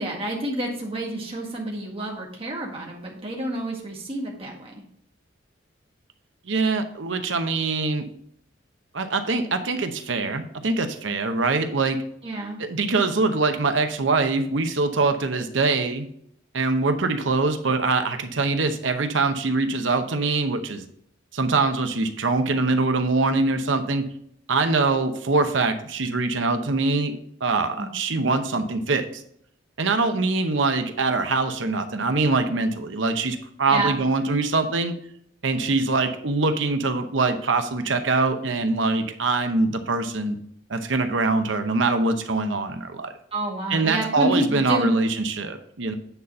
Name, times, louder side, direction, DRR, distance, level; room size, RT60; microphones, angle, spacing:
voice 1, 0.0-4.7 12.2-12.6 27.7-27.9 33.7-34.0 43.3-45.0, right 1 dB, 30° right, -1 dB, 1.8 m, -28 dB
voice 2, 6.5-8.1 8.9-12.0 12.6-16.1 16.5-20.8 21.3-24.0 24.5-27.2 27.4-29.2 29.8-34.9 35.4-40.4 40.7-43.1 43.7-45.9, right 3 dB, 70° right, 7 dB, 0.9 m, -23 dB
9.1 x 4.2 x 5.4 m, 0.67 s
head